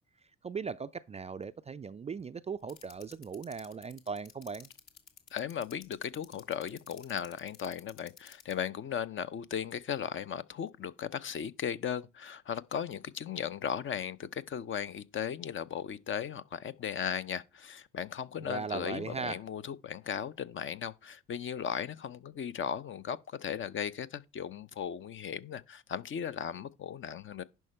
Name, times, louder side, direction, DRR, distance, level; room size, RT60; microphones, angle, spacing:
voice 1, 0.4-4.7 18.4-19.4, right 5 dB, 20° right, 0.4 m, -38 dB
sound 1, 2.7-8.5, left 7 dB, 55° left, 1.8 m, -51 dB
voice 2, 5.3-27.4, left 8 dB, 35° left, 0.7 m, -37 dB
11.0 x 5.6 x 4.3 m
figure-of-eight pair, 50°, 33 cm